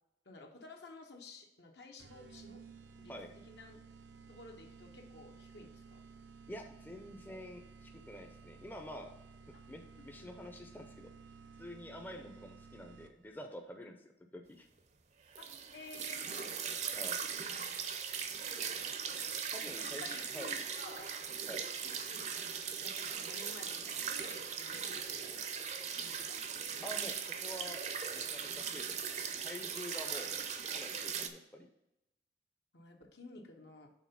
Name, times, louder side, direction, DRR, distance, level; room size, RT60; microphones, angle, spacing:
voice 1, 0.2-2.6 3.0-3.1 3.5-3.8 4.3-6.0 9.5-9.6 10.0-10.3 12.2-12.5 15.4-16.8 18.5-19.2 19.7-21.1 21.4-25.6 26.0-26.9 30.2-30.3 32.7-33.9, left 3 dB, 75° left, 2 dB, 1.1 m, -54 dB
sound 1, 2.0-13.4, right 5 dB, 85° right, 0.6 m, -55 dB
voice 2, 6.5-9.1 9.7-11.1 11.6-14.7 16.9-17.2 19.5-20.6 21.5-21.6 26.8-27.8 28.1-30.3 30.7-31.7, equal, 10° left, 3 dB, 0.5 m, -48 dB
sound 2, 15.4-31.3, right 7 dB, 40° right, 0.5 m, -39 dB
6.3 x 3.8 x 5.7 m, 0.89 s
head